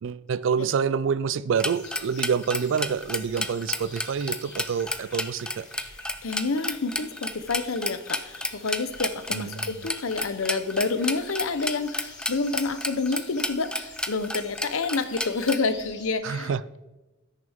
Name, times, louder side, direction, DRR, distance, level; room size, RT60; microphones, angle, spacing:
voice 1, 0.0-5.7 9.3-9.9 16.2-16.6, right 6 dB, 65° right, 0.4 m, -27 dB
sound 1, 1.6-15.6, left 1 dB, 5° left, 0.5 m, -32 dB
sound 2, 1.7-16.1, left 3 dB, 60° left, 2.1 m, -48 dB
voice 2, 6.2-16.8, left 4 dB, 75° left, 0.8 m, -28 dB
15.5 x 6.6 x 3.6 m
head